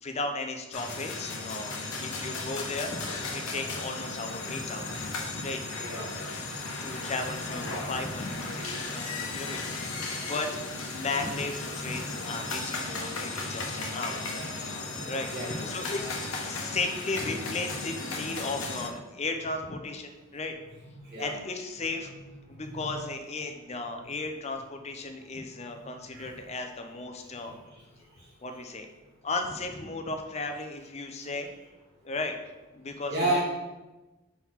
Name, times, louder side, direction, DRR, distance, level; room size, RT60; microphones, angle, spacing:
voice 1, 0.0-5.6 6.3-9.8 10.2-10.5 10.9-14.3 15.0-15.3 15.6-16.2 16.4-20.6 21.2-22.1 22.5-27.5 28.4-28.9 29.2-31.5 32.0-32.4 32.7-33.4, left 3 dB, 30° left, 5 dB, 0.5 m, -35 dB
sound 1, 0.7-18.9, left 3 dB, 80° left, 0.9 m, -35 dB
voice 2, 5.8-6.2 9.4-9.6 15.3-15.7 21.0-21.4 22.6-22.8 25.7-25.8 26.1-26.4 27.4-27.8 33.1-33.4, right 1 dB, 50° right, -4 dB, 1.2 m, -32 dB
5.6 x 3.9 x 4.5 m, 1.1 s
head